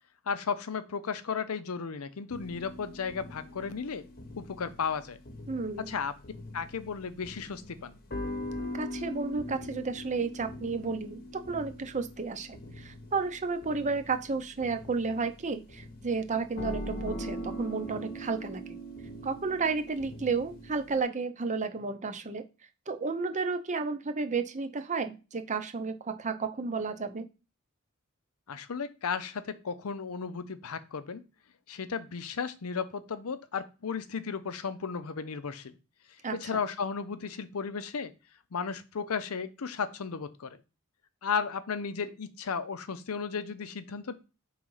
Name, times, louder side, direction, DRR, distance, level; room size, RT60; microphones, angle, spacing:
voice 1, 0.3-4.0 4.4-5.2 5.9-6.1 6.5-8.0 28.5-31.2 31.7-35.8 36.3-38.1 38.5-40.6 41.2-44.1, left 6 dB, 90° left, 12 dB, 0.6 m, -34 dB
sound 1, 2.3-21.0, equal, 45° left, 0.9 m, -42 dB
voice 2, 5.5-5.9 8.7-18.8 19.2-22.4 22.9-27.3 36.2-36.3, right 4 dB, 35° right, 9 dB, 0.6 m, -32 dB
4.9 x 3.9 x 5.5 m, 0.31 s
head